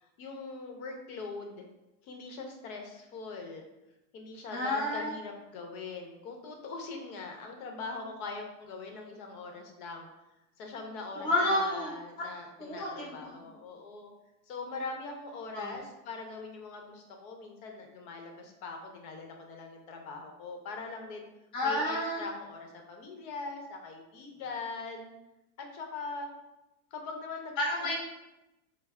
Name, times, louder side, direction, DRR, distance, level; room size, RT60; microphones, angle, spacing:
voice 1, 0.0-1.6 2.0-3.7 4.1-10.1 10.6-14.1 14.5-21.3 21.6-25.1 25.6-26.3 26.9-27.5, left 3 dB, 65° left, 3 dB, 0.9 m, -42 dB
voice 2, 4.5-5.1 11.2-11.9 12.6-13.3 15.5-15.8 21.5-22.2 27.6-27.9, left 1 dB, 10° left, -4 dB, 0.4 m, -30 dB
4.3 x 2.0 x 3.5 m, 0.95 s
supercardioid pair, 140°, 47 cm